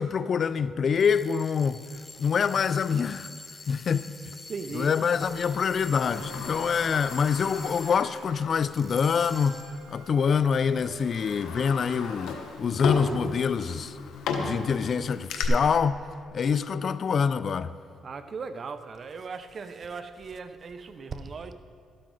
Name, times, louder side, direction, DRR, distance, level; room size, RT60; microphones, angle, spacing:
voice 1, 0.0-1.8 2.2-3.3 3.7-4.2 4.7-9.6 9.9-14.0 14.4-16.0 16.3-17.7, left 6 dB, 50° left, 0.3 m, -25 dB
sound 1, 0.9-8.3 8.7-9.9, left 3 dB, 25° left, 0.8 m, -45 dB
voice 2, 2.0-2.3 4.5-5.0 18.0-21.5, right 4 dB, 45° right, 0.7 m, -38 dB
Wind instrument woodwind instrument, 5.0-12.5, right 7 dB, 85° right, 0.7 m, -50 dB
Sliding door, 5.4-8.7 9.0-9.1 10.1-10.3 10.7-15.4, left 5 dB, 85° left, 1.1 m, -35 dB
12.5 x 12.0 x 3.8 m
cardioid pair, 90°, 0 cm